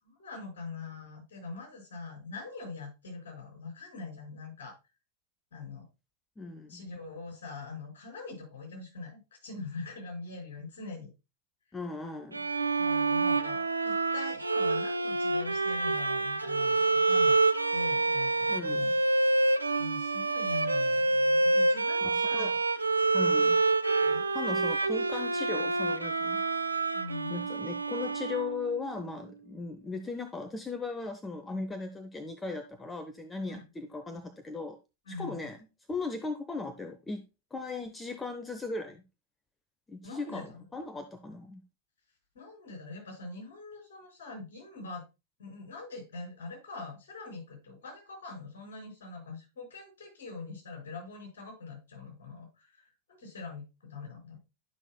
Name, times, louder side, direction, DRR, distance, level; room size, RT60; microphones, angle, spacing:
voice 1, 0.1-4.8 5.5-5.9 6.7-11.1 12.8-17.4 17.7-19.0 19.8-22.6 23.3-23.5 23.9-24.2 26.9-27.5 33.5-33.7 35.1-35.5 40.0-40.7 42.3-45.0 45.4-54.4, left 3 dB, 60° left, -1 dB, 5.2 m, -43 dB
voice 2, 6.4-6.8 11.7-12.5 18.5-18.9 22.3-22.5 23.1-23.6 24.3-26.4 27.3-34.8 35.1-35.6 35.9-37.2 37.5-39.0 39.9-41.6, left 3 dB, 15° left, 7 dB, 0.7 m, -37 dB
Bowed string instrument, 12.3-28.9, right 3 dB, 80° right, 0.4 m, -27 dB
12.0 x 5.9 x 2.3 m, 0.26 s
figure-of-eight pair, 90°, 0 cm